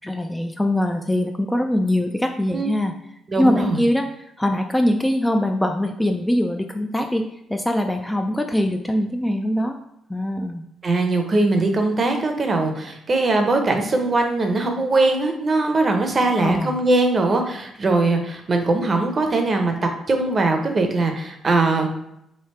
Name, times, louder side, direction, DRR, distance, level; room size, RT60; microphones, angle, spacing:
voice 1, 0.0-2.9 3.4-4.1 4.4-7.2 7.5-9.8 10.1-10.6 16.4-16.8, left 1 dB, 10° left, 5 dB, 0.3 m, -22 dB
voice 2, 3.3-3.8 10.8-19.7 20.1-21.9, right 2 dB, 40° right, 4 dB, 0.7 m, -21 dB
3.3 x 2.7 x 4.2 m, 0.79 s
cardioid pair, 90°, 0 cm